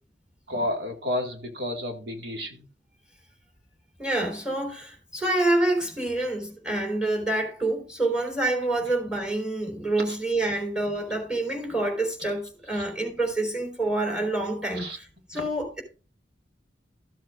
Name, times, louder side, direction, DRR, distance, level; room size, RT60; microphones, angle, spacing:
voice 1, 0.5-2.7 12.7-12.8 14.7-15.0 15.3-15.4, left 1 dB, 60° right, 2.1 m, -31 dB
voice 2, 4.0-15.8, right 2 dB, 5° right, 3.5 m, -27 dB
14.5 x 7.6 x 2.5 m
head